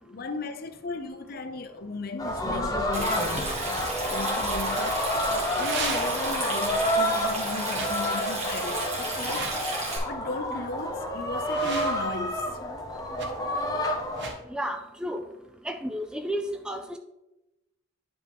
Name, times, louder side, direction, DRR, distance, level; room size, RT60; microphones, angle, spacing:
voice 1, 0.0-9.5 10.1-12.6, left 3 dB, 50° left, 0.6 m, -36 dB
sound 1, 2.2-14.3, left 1 dB, 20° left, 0.8 m, -29 dB
Stream, 2.9-10.0, right 2 dB, 35° right, 2.1 m, -33 dB
sound 2, 5.3-6.4 7.7-7.9 9.1-9.7 11.2-12.2 13.2-13.3 14.1-14.4, right 4 dB, 60° right, 1.2 m, -37 dB
voice 2, 14.5-15.2 15.6-17.0, equal, 5° right, 0.4 m, -32 dB
9.5 x 5.2 x 3.5 m
head